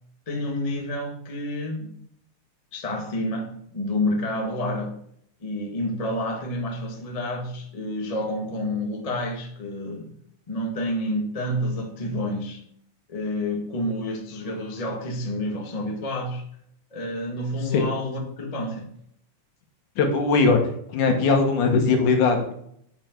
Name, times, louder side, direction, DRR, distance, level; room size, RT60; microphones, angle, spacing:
voice 1, 0.3-1.9 2.7-4.9 5.4-10.1 10.5-12.6 13.1-16.5 16.9-18.9, left 1 dB, 35° left, 0.5 m, -29 dB
voice 2, 20.0-20.6 20.9-22.5, left 4 dB, 65° left, 2.8 m, -20 dB
10.5 x 6.2 x 4.6 m
omnidirectional pair, 3.9 m